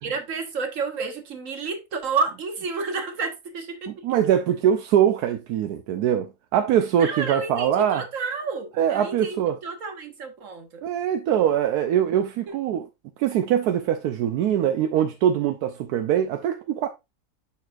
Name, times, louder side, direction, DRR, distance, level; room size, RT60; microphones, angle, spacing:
voice 1, 0.0-4.0 7.0-10.8 12.5-12.6, right 4 dB, 55° right, 1.6 m, -30 dB
voice 2, 3.9-8.0 8.8-9.5 10.8-12.9 13.2-16.9, right 10 dB, 80° right, 1.1 m, -22 dB
10.5 x 4.2 x 2.4 m
omnidirectional pair, 1.6 m